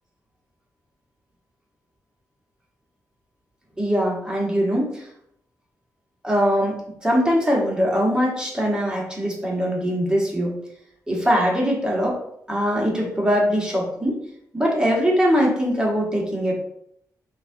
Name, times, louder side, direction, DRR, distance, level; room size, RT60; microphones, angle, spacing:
voice 1, 3.8-5.1 6.2-6.7 7.0-10.6 11.1-12.2 12.5-14.2 14.5-16.5, equal, 10° right, -2 dB, 1.2 m, -21 dB
5.9 x 2.4 x 2.7 m, 0.73 s
wide cardioid pair, 110°, 7 cm